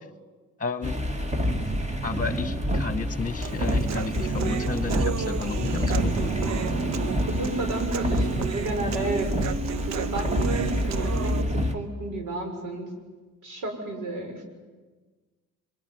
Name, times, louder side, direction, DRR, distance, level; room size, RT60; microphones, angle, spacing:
voice 1, 0.6-1.0 2.0-6.1, left 4 dB, 25° left, 12 dB, 1.5 m, -32 dB
sound 1, 0.8-11.7, equal, 20° right, 2.4 m, -27 dB
Human voice, 3.4-11.4, right 7 dB, 65° right, 1.1 m, -33 dB
voice 2, 7.3-9.3 9.9-12.9 13.4-14.4, right 2 dB, 90° right, 4 dB, 6.1 m, -32 dB
25.0 x 24.5 x 9.6 m, 1.3 s
cardioid pair, 90°, 30 cm